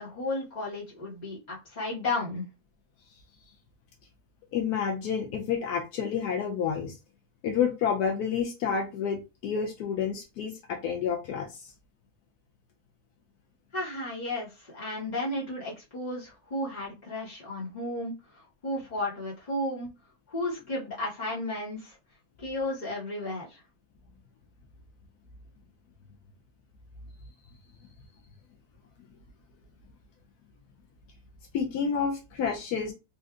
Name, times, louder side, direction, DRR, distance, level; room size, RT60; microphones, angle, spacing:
voice 1, 0.0-2.5 13.7-19.9 20.3-21.9 22.4-23.6, left 2 dB, 30° left, -6 dB, 1.3 m, -33 dB
voice 2, 4.5-7.0 7.4-11.7 31.5-32.9, left 7 dB, 75° left, 2 dB, 1.1 m, -29 dB
3.4 x 2.6 x 2.4 m, 0.27 s
omnidirectional pair, 1.7 m